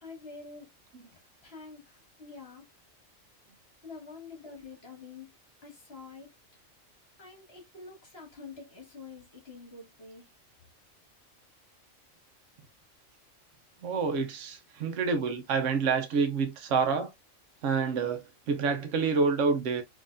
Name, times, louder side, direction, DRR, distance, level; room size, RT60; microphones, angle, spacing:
voice 1, 0.0-0.7 1.1-2.7 3.8-5.3 5.6-6.3 7.2-10.3, left 4 dB, 50° left, 1.7 m, -47 dB
voice 2, 13.8-17.1 17.6-19.8, right 5 dB, 65° right, 1.0 m, -28 dB
3.8 x 3.0 x 2.5 m
omnidirectional pair, 1.4 m